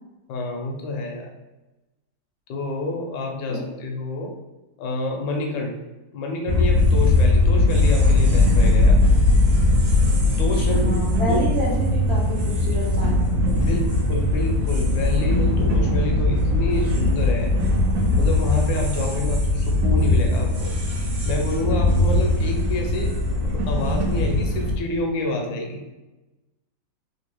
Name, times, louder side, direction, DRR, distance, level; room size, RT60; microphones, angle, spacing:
voice 1, 0.3-1.3 2.5-4.3 4.8-5.7 6.1-9.0 10.4-11.0 11.3-11.4 13.5-17.5 18.2-20.7 21.3-23.1 23.4-25.8, left 2 dB, 75° left, 1 dB, 1.4 m, -28 dB
sound 1, 6.5-24.8, left 2 dB, 80° right, 1.5 m, -20 dB
voice 2, 10.3-13.8, equal, 60° right, -7 dB, 0.6 m, -30 dB
3.8 x 2.7 x 3.0 m, 1.1 s
omnidirectional pair, 2.1 m